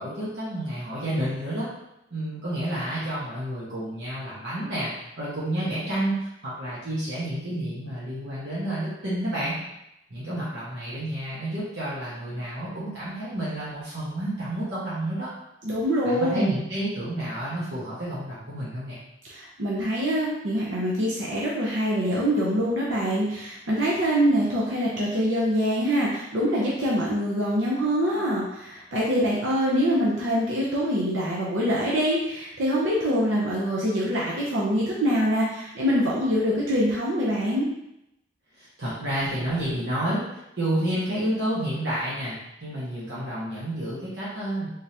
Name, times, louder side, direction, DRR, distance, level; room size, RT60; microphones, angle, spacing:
voice 1, 0.0-1.7 2.1-4.9 5.2-9.6 10.1-15.3 16.0-19.0 38.6-44.7, right 1 dB, 70° right, -9 dB, 1.2 m, -30 dB
voice 2, 15.6-16.5 19.2-37.7, equal, 90° right, -5 dB, 0.8 m, -24 dB
3.6 x 3.4 x 2.8 m, 0.85 s
head